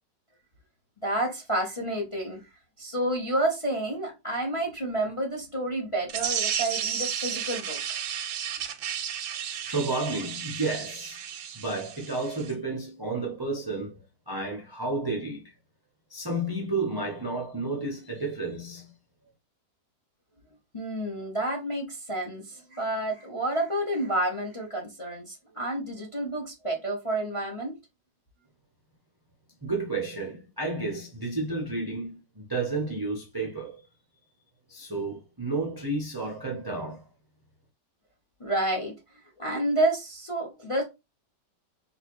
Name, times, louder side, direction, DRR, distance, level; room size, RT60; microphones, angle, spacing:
voice 1, 1.0-2.4 2.8-8.0 20.7-27.7 38.4-38.9 39.4-40.8, right 1 dB, 30° left, 0.6 m, -29 dB
sound 1, 6.1-12.5, right 8 dB, 70° right, 1.0 m, -33 dB
voice 2, 9.5-11.2 11.5-15.5 16.1-18.9 29.6-33.8 34.7-37.0, right 2 dB, 35° right, 0.3 m, -31 dB
4.0 x 2.5 x 2.9 m
omnidirectional pair, 1.9 m